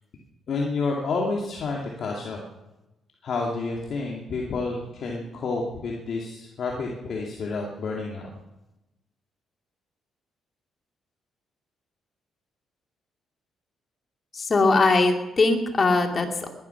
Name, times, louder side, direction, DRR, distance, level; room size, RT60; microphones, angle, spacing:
voice 1, 0.5-2.4 3.2-8.3, left 3 dB, 60° left, -1 dB, 2.4 m, -29 dB
voice 2, 14.3-16.5, left 3 dB, 35° left, 4 dB, 2.4 m, -21 dB
20.5 x 11.5 x 5.8 m, 1.0 s
cardioid pair, 90°, 0 cm